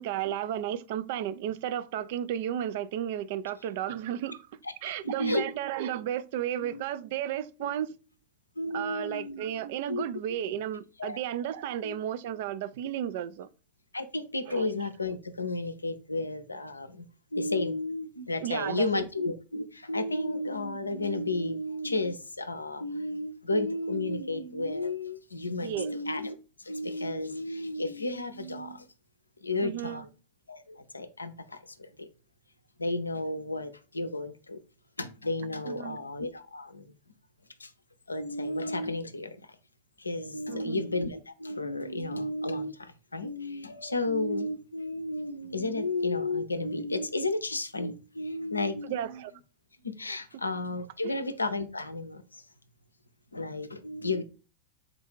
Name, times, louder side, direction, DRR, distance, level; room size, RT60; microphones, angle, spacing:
voice 1, 0.0-4.5 4.8-7.9 8.7-13.5 14.5-14.6 18.4-18.9 25.6-25.9 29.6-30.1 35.7-36.0 40.5-40.8 48.8-49.3 51.0-51.1, right 11 dB, 50° right, 0.3 m, -33 dB
voice 2, 5.0-5.4 6.6-6.8 7.6-7.7 8.6-9.4 9.9-10.0 11.0-11.2 11.8-12.0 12.8-12.9 13.9-17.1 17.3-28.9 29.4-30.1 30.5-32.1 32.8-34.6 35.0-36.9 37.6-37.7 38.1-39.6 40.0-49.2 50.0-52.4 53.3-54.2, left 2 dB, 80° left, 0.5 m, -32 dB
3.9 x 2.4 x 4.5 m
figure-of-eight pair, 90°, 0 cm